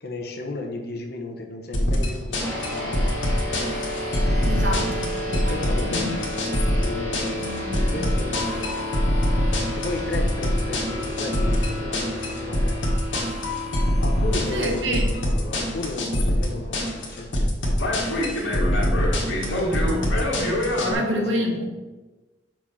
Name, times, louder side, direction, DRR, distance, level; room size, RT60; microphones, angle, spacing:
voice 1, 0.0-3.1 4.7-6.4 6.8-8.9 9.5-12.8 13.3-13.4 14.0-18.7 20.8-21.3 21.6-21.7, left 2 dB, 55° left, 2 dB, 1.0 m, -35 dB
sound 1, 1.7-20.9, left 1 dB, 80° left, 1.6 m, -24 dB
sound 2, 2.4-17.2, left 1 dB, 10° left, 2.4 m, -33 dB
voice 2, 4.4-5.6 5.8-6.2 7.4-8.0 14.5-15.1 19.3-21.6, equal, 75° right, 1 dB, 1.4 m, -29 dB
5.7 x 4.6 x 6.1 m, 1.2 s
head